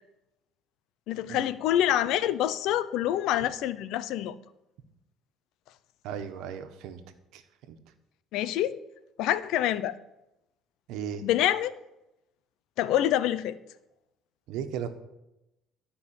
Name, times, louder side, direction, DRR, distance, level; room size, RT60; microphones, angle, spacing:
voice 1, 1.1-4.4 8.3-8.8 9.2-9.9 11.2-11.7 12.8-13.6, left 12 dB, 75° left, 15 dB, 0.7 m, -26 dB
voice 2, 6.0-7.0 7.3-7.4 7.7-7.8 10.9-11.2 14.5-14.9, right 8 dB, 80° right, 8 dB, 1.4 m, -35 dB
13.0 x 5.5 x 9.0 m, 0.89 s
cardioid pair, 110°, 0 cm